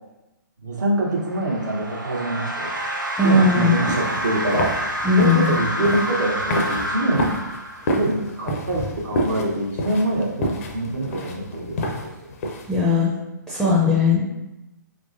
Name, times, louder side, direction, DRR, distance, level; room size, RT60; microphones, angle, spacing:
voice 1, 0.6-2.8 3.2-7.4 7.8-12.3, right 1 dB, 70° right, -2 dB, 0.9 m, -25 dB
sound 1, 1.1-8.2, equal, 85° right, 0.6 m, -28 dB
voice 2, 3.2-3.8 5.0-5.6 12.7-13.1 13.5-14.2, left 3 dB, 5° right, -6 dB, 0.5 m, -18 dB
sound 2, 3.6-12.8, left 1 dB, 50° left, 0.5 m, -29 dB
3.5 x 3.1 x 2.5 m, 0.97 s
figure-of-eight pair, 125°, 10 cm